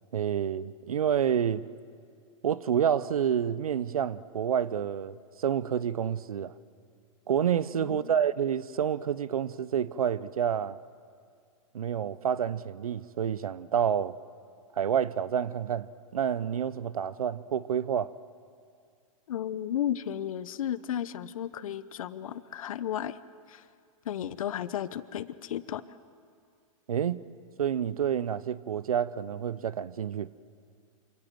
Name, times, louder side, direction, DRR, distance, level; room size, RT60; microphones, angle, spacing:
voice 1, 0.1-1.7 2.4-6.5 7.3-10.8 11.7-14.1 14.8-15.9 16.1-18.1 26.9-27.2 27.6-30.3, right 8 dB, 90° right, 0.8 m, -28 dB
voice 2, 7.7-8.1 19.3-23.2 23.5-23.6 24.0-25.8, left 10 dB, 75° left, 1.0 m, -34 dB
27.5 x 26.0 x 7.8 m
hypercardioid pair, 125°, 18 cm